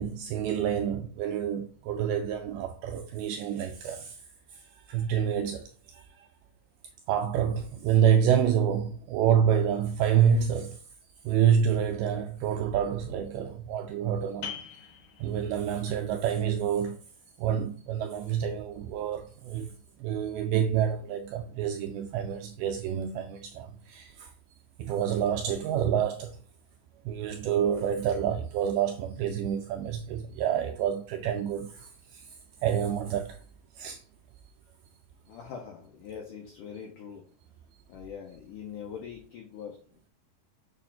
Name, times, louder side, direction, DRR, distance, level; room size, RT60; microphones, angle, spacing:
voice 1, 0.0-4.2 4.5-6.3 7.1-10.8 11.2-14.5 15.2-17.0 17.4-19.7 20.0-24.3 24.8-26.4 27.1-32.4 32.6-33.4 33.8-34.0, right 8 dB, 85° right, 2.2 m, -28 dB
sound 1, 14.4-19.8, left 8 dB, 65° left, 2.1 m, -47 dB
voice 2, 35.3-37.3 37.9-39.8, left 7 dB, 80° left, 1.8 m, -42 dB
7.2 x 2.5 x 5.6 m
omnidirectional pair, 4.9 m